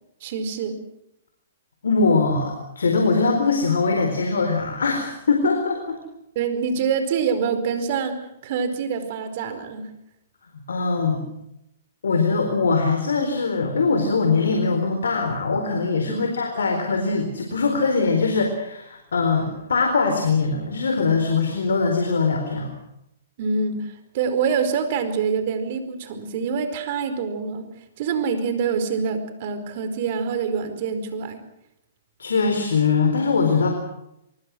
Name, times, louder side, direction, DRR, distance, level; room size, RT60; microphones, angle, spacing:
voice 1, 0.2-0.8 6.3-8.2 8.4-9.9 16.1-16.3 23.4-27.6 28.0-31.4, right 6 dB, 50° right, 10 dB, 4.7 m, -25 dB
voice 2, 1.8-6.0 10.7-11.2 12.0-22.7 32.2-33.7, left 4 dB, 80° left, 4 dB, 4.2 m, -22 dB
24.5 x 24.0 x 6.3 m, 0.81 s
hypercardioid pair, 120°, 0 cm